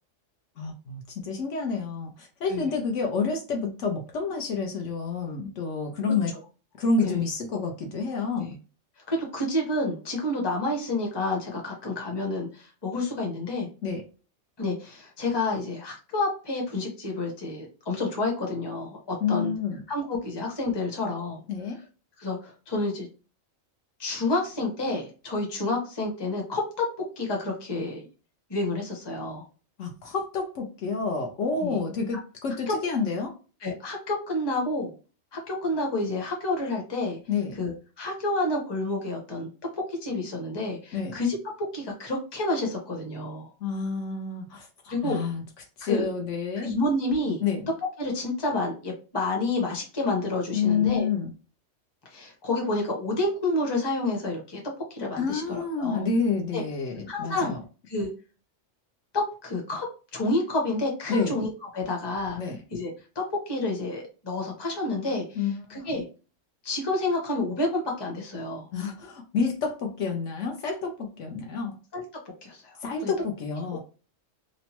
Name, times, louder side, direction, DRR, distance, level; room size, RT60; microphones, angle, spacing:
voice 1, 0.6-6.3 6.8-8.6 13.8-14.0 19.2-19.8 21.5-21.8 29.8-33.3 37.3-37.5 40.9-41.2 43.6-45.4 45.8-46.7 47.4-47.7 50.5-51.3 55.2-57.6 61.1-61.3 62.4-62.6 65.4-65.9 68.7-71.8 72.8-73.8, left 5 dB, 70° left, 2 dB, 0.9 m, -29 dB
voice 2, 9.1-13.7 14.6-19.5 19.9-21.4 22.2-23.1 24.0-26.8 27.2-28.1 28.5-29.4 31.6-31.8 32.7-32.8 33.6-34.9 35.3-37.2 37.5-39.5 39.7-41.4 41.7-43.5 44.9-45.2 45.8-46.1 46.6-47.4 48.0-51.1 52.1-54.6 54.9-56.1 56.5-56.6 57.1-57.5 57.9-58.1 59.1-59.9 60.1-62.4 62.7-66.1 66.6-68.7 71.9-72.0 72.4-73.1 73.7-73.8, left 2 dB, 25° left, 0 dB, 0.8 m, -29 dB
2.9 x 2.1 x 2.8 m, 0.34 s
omnidirectional pair, 1.4 m